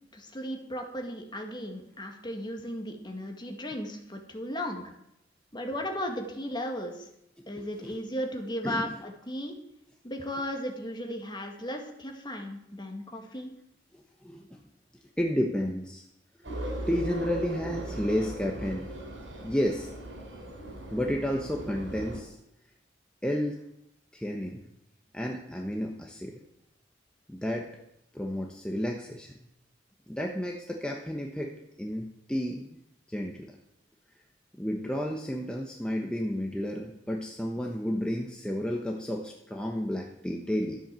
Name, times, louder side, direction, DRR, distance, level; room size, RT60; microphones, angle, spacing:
voice 1, 0.1-4.9 5.5-7.0 7.5-9.5 10.0-13.5, equal, 25° left, 3 dB, 2.0 m, -36 dB
voice 2, 7.6-8.0 8.6-9.0 13.9-14.5 15.2-16.1 16.4-16.5 16.9-18.9 19.4-19.9 20.9-22.4 23.2-23.6 24.1-24.7 25.1-26.4 27.3-27.7 28.1-29.3 30.1-32.7 33.1-33.6 34.6-40.8, equal, 5° left, 0 dB, 1.1 m, -32 dB
Northern Line Tube, 16.4-22.2, right 1 dB, 85° right, 4.6 m, -38 dB
13.0 x 8.0 x 7.6 m, 0.81 s
head